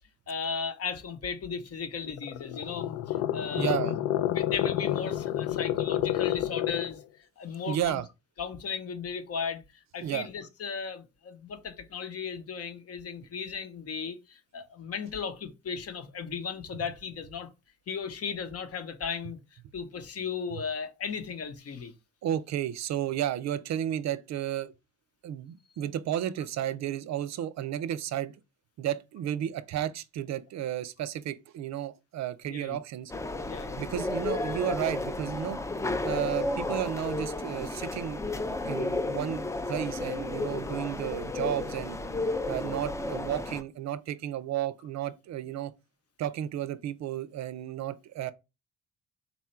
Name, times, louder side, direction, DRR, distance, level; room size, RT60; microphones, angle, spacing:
voice 1, 0.3-3.8 4.3-7.0 7.4-8.0 8.4-17.5 17.9-19.4 19.7-21.9 32.4-32.8 33.4-33.8, left 6 dB, 50° left, 0.9 m, -36 dB
sound 1, 2.0-7.0, left 12 dB, 80° left, 0.5 m, -29 dB
voice 2, 3.5-4.1 7.7-8.1 10.0-10.3 22.2-24.7 25.2-28.3 28.8-33.1 33.8-35.6 36.0-38.2 38.6-42.0 42.5-45.7 46.2-48.3, right 11 dB, 65° right, 0.5 m, -33 dB
sound 2, 33.1-43.6, left 2 dB, 10° left, 0.4 m, -33 dB
4.1 x 2.3 x 4.3 m
cardioid pair, 90°, 30 cm